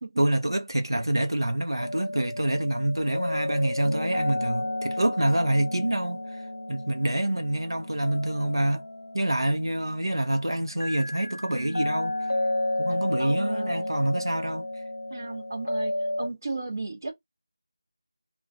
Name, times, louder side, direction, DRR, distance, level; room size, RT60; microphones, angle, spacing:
voice 1, 0.2-6.4 6.7-8.8 9.1-12.1 12.8-14.7, right 1 dB, 80° right, 0.6 m, -26 dB
sound 1, 1.8-16.3, left 1 dB, 85° left, 0.3 m, -32 dB
voice 2, 13.2-13.9 15.1-17.1, right 3 dB, 40° right, 0.8 m, -35 dB
2.3 x 2.2 x 2.5 m
figure-of-eight pair, 170°, 2 cm